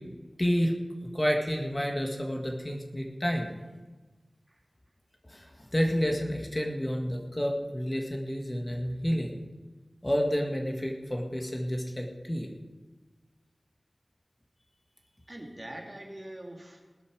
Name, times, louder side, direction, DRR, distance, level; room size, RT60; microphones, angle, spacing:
voice 1, 0.4-0.7 1.1-3.5 5.3-9.4 10.0-12.5, equal, 25° left, 1 dB, 1.9 m, -30 dB
voice 2, 15.3-17.0, right 1 dB, 25° right, 2 dB, 2.4 m, -43 dB
19.5 x 8.6 x 6.3 m, 1.3 s
wide cardioid pair, 60°, 0 cm